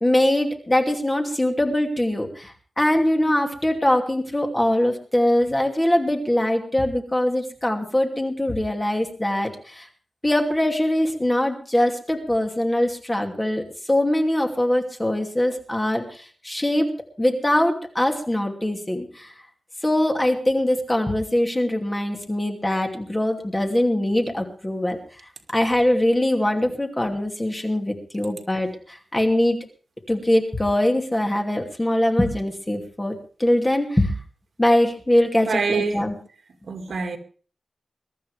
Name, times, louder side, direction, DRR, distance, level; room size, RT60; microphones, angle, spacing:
voice 1, 0.0-9.9 10.2-16.9 17.2-19.3 19.8-25.0 25.5-29.6 30.1-34.1 34.6-36.1, left 1 dB, 15° left, 2.7 m, -22 dB
voice 2, 35.4-36.1 36.7-37.2, right 4 dB, 75° right, 2.1 m, -25 dB
23.0 x 13.0 x 3.4 m
wide cardioid pair, 145°, 0 cm